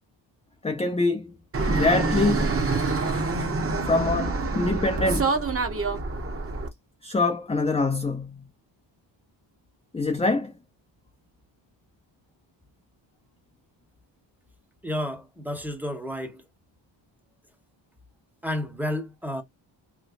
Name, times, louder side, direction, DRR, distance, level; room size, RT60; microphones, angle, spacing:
voice 1, 0.6-1.4 1.7-2.6 3.8-5.3 7.0-8.4 9.9-10.5, left 3 dB, 15° left, 0.5 m, -25 dB
Fixed-wing aircraft airplane, 1.5-6.7, right 3 dB, 30° right, 1.1 m, -26 dB
voice 2, 14.8-16.4 18.4-19.4, left 1 dB, 5° right, 1.0 m, -31 dB
3.2 x 3.1 x 2.4 m
cardioid pair, 100°, 45 cm